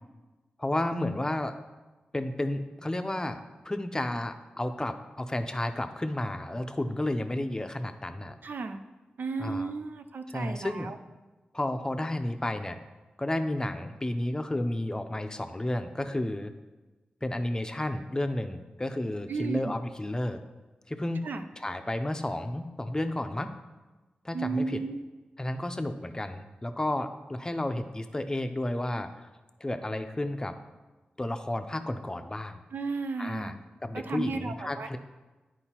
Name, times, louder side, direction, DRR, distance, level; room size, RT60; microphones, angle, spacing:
voice 1, 0.6-1.5 2.1-8.4 9.4-9.7 10.3-10.9 11.5-12.8 13.2-16.5 17.2-20.4 20.9-21.2 21.6-23.5 24.2-24.8 25.4-29.3 29.6-30.5 31.2-32.6 33.2-35.0, left 1 dB, 20° left, 8 dB, 0.6 m, -32 dB
voice 2, 8.4-8.8 9.2-11.0 19.3-19.6 21.2-21.4 24.3-25.0 32.7-33.5 33.9-34.9, right 4 dB, 70° right, 7 dB, 0.5 m, -33 dB
9.8 x 4.5 x 2.9 m, 1.2 s
cardioid pair, 55°, 3 cm